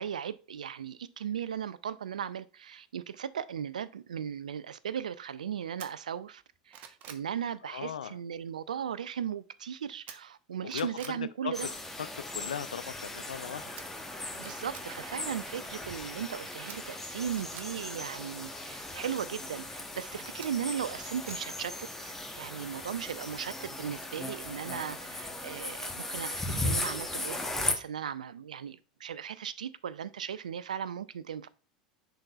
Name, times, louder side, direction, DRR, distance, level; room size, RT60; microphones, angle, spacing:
voice 1, 0.0-11.7 14.4-31.5, right 8 dB, 80° right, 0.4 m, -37 dB
sound 1, 5.8-5.9 6.4-7.3 10.1-10.4 10.7-11.2 13.8-13.9 14.4-14.9 16.7-17.7 20.4-21.4 21.8-21.9, right 8 dB, 45° right, 0.9 m, -47 dB
voice 2, 7.6-8.2 10.6-11.7 12.0-12.1 12.3-13.7 22.6-22.8, left 8 dB, 80° left, 0.4 m, -38 dB
sound 2, 11.5-27.7, left 2 dB, 10° left, 1.2 m, -38 dB
10.0 x 4.0 x 2.4 m
hypercardioid pair, 85°, 4 cm